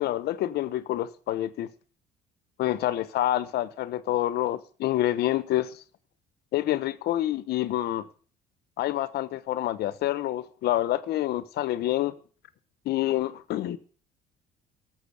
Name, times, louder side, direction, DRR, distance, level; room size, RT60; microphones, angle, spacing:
voice 1, 0.0-1.7 2.6-5.8 6.5-8.1 8.8-12.1 12.8-13.8, left 14 dB, 75° left, 1.1 m, -27 dB
13.0 x 7.4 x 8.5 m
cardioid pair, 110°, 17 cm